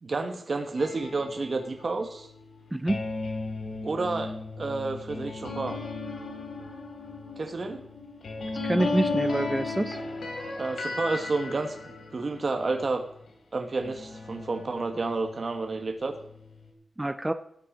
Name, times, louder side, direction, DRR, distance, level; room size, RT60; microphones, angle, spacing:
voice 1, 0.0-2.3 3.8-5.8 7.4-7.8 10.6-11.8 12.1-13.0 13.5-16.1, right 3 dB, 40° right, 4 dB, 1.3 m, -30 dB
sound 1, 0.8-13.3 13.8-16.7, left 3 dB, 70° left, 3.3 m, -36 dB
voice 2, 2.7-3.1 8.6-10.0 17.0-17.3, right 1 dB, 10° right, 10 dB, 0.5 m, -26 dB
16.0 x 9.0 x 5.2 m, 0.71 s
wide cardioid pair, 160°, 0 cm